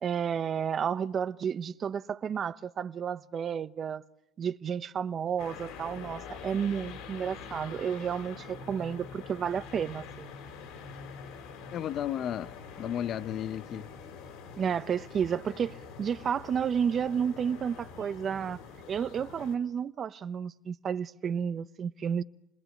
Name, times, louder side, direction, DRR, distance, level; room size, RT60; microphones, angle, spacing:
voice 1, 0.0-4.0 4.4-10.3 14.6-18.6 18.9-22.2, right 7 dB, 35° right, 1.0 m, -31 dB
sound 1, 5.4-19.6, left 5 dB, 70° left, 5.4 m, -45 dB
voice 2, 11.7-13.9, left 10 dB, 45° left, 0.9 m, -34 dB
29.5 x 20.5 x 8.7 m
supercardioid pair, 100°, 0 cm